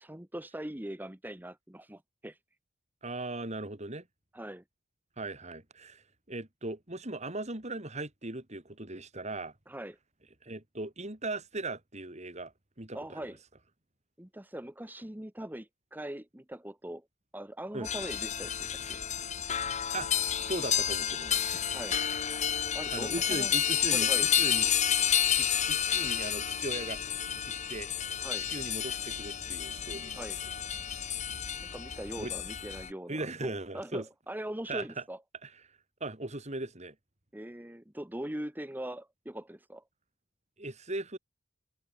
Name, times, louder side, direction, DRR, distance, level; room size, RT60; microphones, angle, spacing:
voice 1, 0.0-2.4 4.3-4.6 9.7-10.0 12.9-13.4 14.2-17.1 17.3-19.0 21.7-22.0 22.7-23.5 23.9-24.3 28.2-28.5 30.1-30.4 31.6-35.2 37.3-39.8, right 1 dB, 10° right, 1.1 m, -41 dB
voice 2, 3.0-4.0 5.2-9.5 10.4-12.5 12.8-13.3 17.7-17.9 19.9-20.1 20.4-21.6 22.9-24.7 25.4-27.0 27.7-27.9 28.5-30.2 32.2-32.3 33.1-34.1 34.7-35.0 35.4-35.5 36.0-36.9 40.6-41.2, right 2 dB, 35° right, 3.2 m, -38 dB
sound 1, 17.8-32.9, left 9 dB, 35° left, 1.0 m, -30 dB
head